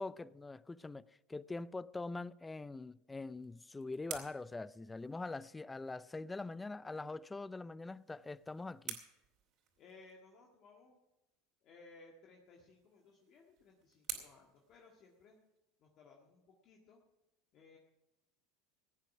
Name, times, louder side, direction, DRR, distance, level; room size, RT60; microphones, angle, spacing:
voice 1, 0.0-9.0, left 3 dB, 10° left, 0.3 m, -43 dB
sound 1, 3.2-5.7 7.8-10.2 12.4-15.6, right 9 dB, 50° right, 2.6 m, -51 dB
voice 2, 9.8-11.0 11.6-15.4 15.8-17.0 17.5-17.8, left 3 dB, 45° left, 1.7 m, -61 dB
16.0 x 9.0 x 5.9 m
supercardioid pair, 125°, 0 cm